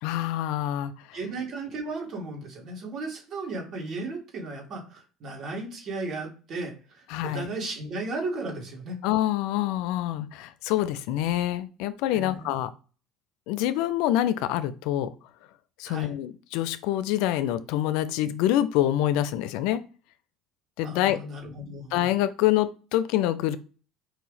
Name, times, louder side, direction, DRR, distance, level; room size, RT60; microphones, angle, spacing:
voice 1, 0.0-1.2 7.1-7.5 9.0-12.7 13.5-15.1 15.8-19.8 20.8-21.2 21.9-23.6, left 13 dB, 75° left, 14 dB, 0.4 m, -26 dB
voice 2, 1.1-9.0 12.1-12.5 15.9-16.1 20.8-21.9, right 2 dB, 50° right, 0 dB, 2.3 m, -35 dB
4.4 x 2.8 x 3.9 m, 0.36 s
supercardioid pair, 85°, 0 cm